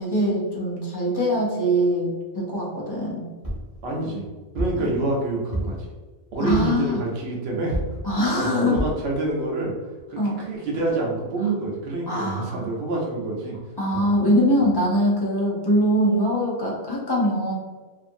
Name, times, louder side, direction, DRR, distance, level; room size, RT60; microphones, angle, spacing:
voice 1, 0.0-3.3 4.8-4.9 6.5-7.0 8.0-8.8 10.2-10.4 12.1-12.7 13.8-17.5, equal, 35° left, -4 dB, 0.4 m, -22 dB
sound 1, 3.4-3.7 4.6-4.9 5.5-5.9 6.5-6.8 7.7-8.1 8.8-9.0 9.6-9.7 10.0-10.1, right 1 dB, 20° right, 0.8 m, -29 dB
voice 2, 3.8-4.2 4.5-5.9 6.3-7.8 8.3-9.7 10.1-13.6 13.9-14.0, right 2 dB, 75° right, -2 dB, 0.9 m, -27 dB
2.6 x 2.6 x 2.5 m, 1.4 s
omnidirectional pair, 1.1 m